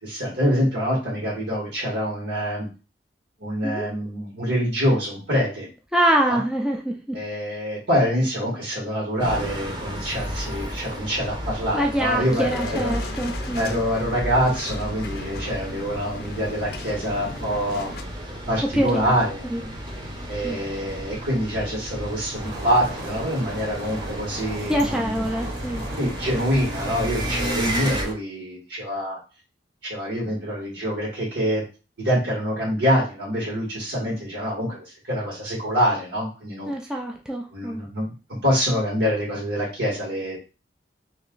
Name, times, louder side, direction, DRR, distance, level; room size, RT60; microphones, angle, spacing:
voice 1, 0.0-2.7 3.4-5.7 6.3-6.4 7.1-12.9 13.5-17.9 18.5-19.5 20.3-25.2 26.0-29.2 29.8-31.6 32.0-36.7 37.5-40.4, equal, 90° right, -5 dB, 1.8 m, -25 dB
voice 2, 5.9-7.2 11.7-13.8 18.7-19.0 19.5-19.6 20.4-20.6 24.7-26.1 36.7-37.8, right 1 dB, 5° right, 0 dB, 0.3 m, -25 dB
sound 1, 9.2-28.0, equal, 25° right, 0.8 m, -33 dB
sound 2, 12.1-18.0, left 4 dB, 60° left, 0.4 m, -38 dB
sound 3, 22.3-28.1, right 1 dB, 60° right, 0.9 m, -37 dB
3.2 x 3.0 x 3.8 m, 0.33 s
head